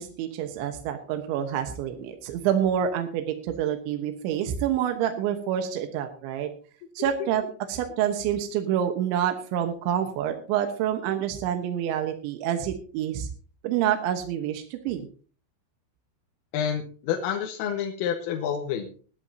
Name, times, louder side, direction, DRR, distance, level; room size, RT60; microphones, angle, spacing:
voice 1, 0.0-6.5 7.0-7.4 7.7-13.3 13.6-15.1, right 10 dB, 75° right, 5 dB, 3.3 m, -27 dB
voice 2, 16.5-18.9, left 8 dB, 90° left, 2 dB, 3.8 m, -28 dB
19.5 x 11.5 x 2.8 m, 0.39 s
omnidirectional pair, 5.7 m